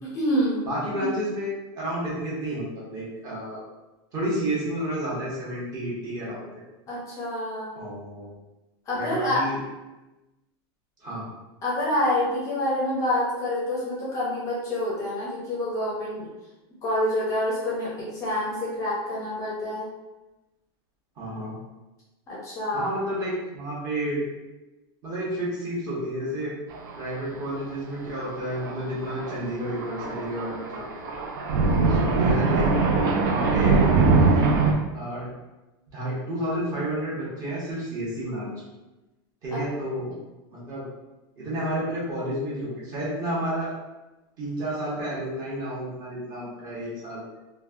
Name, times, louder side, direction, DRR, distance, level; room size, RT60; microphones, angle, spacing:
voice 1, 0.0-0.7 0.9-1.1 6.9-7.7 8.9-9.4 11.6-16.3 16.8-19.8 22.3-22.9 31.7-32.1 39.5-39.6, left 1 dB, 25° left, -5 dB, 0.6 m, -27 dB
voice 2, 0.7-3.6 4.1-6.6 7.7-8.3 8.9-9.6 11.0-11.3 21.2-21.5 22.7-24.2 25.0-26.5 27.0-31.2 31.9-32.7 33.2-34.0 34.2-34.5 34.9-35.3 35.9-38.5 39.4-40.2 40.5-40.8 41.4-43.7 44.4-47.2, right 1 dB, 30° right, -7 dB, 1.1 m, -31 dB
Thunder, 26.7-27.1 27.4-27.5 28.5-34.7, right 4 dB, 60° right, 0.5 m, -22 dB
3.1 x 2.2 x 2.4 m, 1.0 s
supercardioid pair, 155°, 13 cm